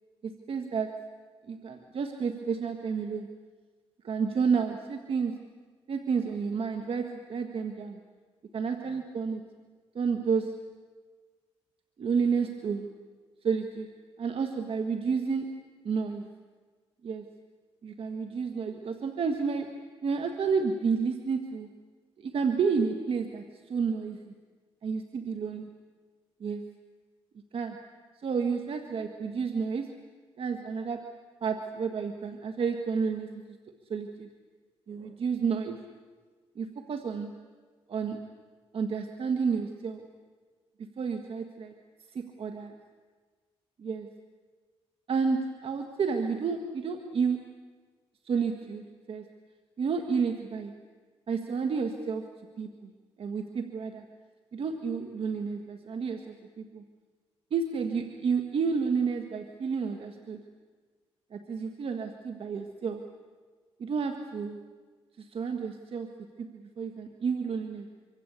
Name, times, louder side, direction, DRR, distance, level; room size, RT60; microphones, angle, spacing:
voice 1, 0.2-1.0 1.5-3.4 4.0-5.4 5.9-8.0 8.5-9.4 9.9-10.7 12.0-12.9 13.4-13.9 14.2-15.6 15.8-16.3 17.0-17.3 17.8-21.7 22.2-24.3 24.8-25.7 26.4-26.8 27.5-27.9 28.2-29.9 30.4-33.6 33.9-34.3 34.9-35.8 36.5-37.4 37.9-38.3 38.7-40.1 40.8-41.7 42.1-42.7 43.8-44.1 45.1-47.5 48.2-49.3 49.8-50.7 51.3-52.3 52.6-52.9 53.2-54.1 54.5-56.8 57.5-60.4 61.3-63.1 63.8-64.6 65.2-67.9, right 5 dB, 65° right, 6 dB, 1.8 m, -31 dB
25.5 x 25.0 x 8.4 m, 1.5 s
cardioid pair, 70°, 10 cm